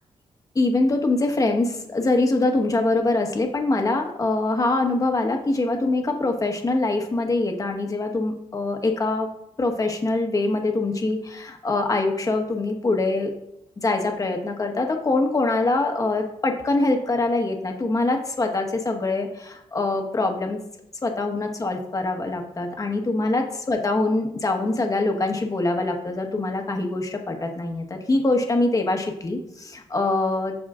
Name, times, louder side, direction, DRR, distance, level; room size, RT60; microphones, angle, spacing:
voice 1, 0.5-9.3 9.6-13.3 13.8-20.6 21.0-30.5, left 2 dB, 30° left, 3 dB, 1.3 m, -24 dB
14.5 x 5.0 x 2.5 m, 0.80 s
cardioid pair, 110°, 12 cm